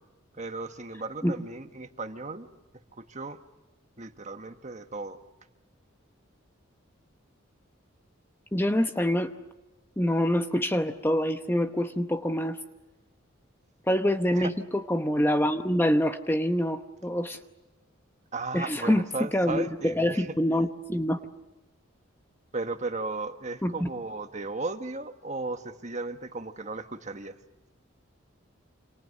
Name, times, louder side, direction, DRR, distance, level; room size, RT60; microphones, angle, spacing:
voice 1, 0.4-2.5 2.7-3.4 4.0-5.2 14.3-14.5 18.3-20.3 22.5-27.3, right 3 dB, 35° right, 8 dB, 1.4 m, -35 dB
voice 2, 8.5-9.3 10.0-12.6 13.9-17.4 18.5-19.0 19.3-21.2 23.6-23.9, equal, 10° left, 8 dB, 0.8 m, -26 dB
28.5 x 27.0 x 6.5 m, 1.1 s
head